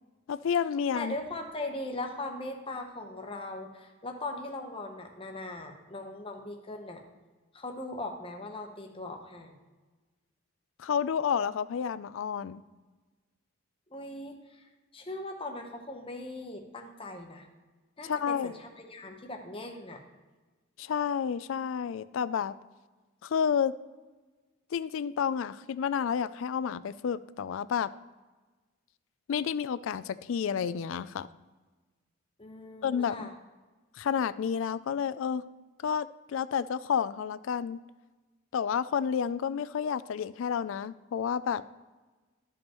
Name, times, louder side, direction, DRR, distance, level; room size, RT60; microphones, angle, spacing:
voice 1, 0.3-1.1 10.8-12.6 18.0-18.5 20.8-22.5 23.2-23.7 24.7-27.9 29.3-31.3 32.8-33.3 34.0-35.5 35.8-37.8 38.5-41.6, left 7 dB, 65° left, 16 dB, 0.3 m, -30 dB
voice 2, 0.9-7.0 7.5-9.5 13.9-17.5 18.0-20.0 32.4-33.3, left 2 dB, 25° left, 3 dB, 0.9 m, -39 dB
13.0 x 5.3 x 3.0 m, 1.3 s
head